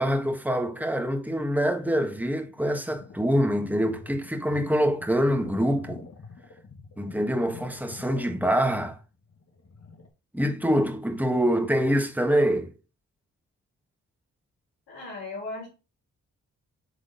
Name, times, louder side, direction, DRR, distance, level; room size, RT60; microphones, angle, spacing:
voice 1, 0.0-6.0 7.0-9.0 10.3-12.7, equal, 5° right, 1.5 m, -25 dB
sound 1, 2.5-10.1, left 4 dB, 45° left, 1.4 m, -46 dB
voice 2, 14.9-15.7, left 3 dB, 85° left, 3.5 m, -36 dB
6.3 x 3.7 x 4.0 m
supercardioid pair, 40°, 35 cm